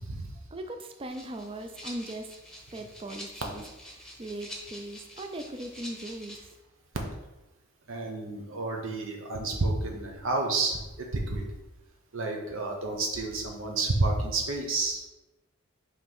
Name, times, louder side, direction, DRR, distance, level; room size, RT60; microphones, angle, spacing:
voice 1, 0.5-2.3 2.7-3.6 3.9-6.5, right 1 dB, 25° right, 6 dB, 0.5 m, -39 dB
Rattle (instrument), 1.1-6.6, equal, 5° left, 1.0 m, -46 dB
voice 2, 7.9-11.5 12.1-15.1, right 2 dB, 70° right, 1 dB, 0.9 m, -30 dB
5.7 x 3.1 x 5.3 m, 1.0 s
head